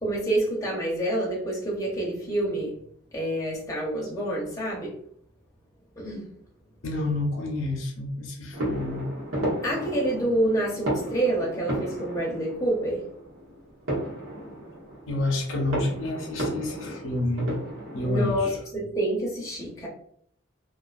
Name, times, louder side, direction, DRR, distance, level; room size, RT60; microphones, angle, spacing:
voice 1, 0.0-2.7 3.1-4.9 6.0-6.3 9.6-13.0 18.0-19.9, right 1 dB, 15° left, -5 dB, 0.6 m, -27 dB
voice 2, 6.8-9.0 15.1-17.5 17.9-18.5, left 2 dB, 80° left, 1 dB, 0.6 m, -29 dB
sound 1, 8.5-18.5, right 1 dB, 85° right, 1.0 m, -34 dB
2.4 x 2.3 x 2.4 m, 0.64 s
head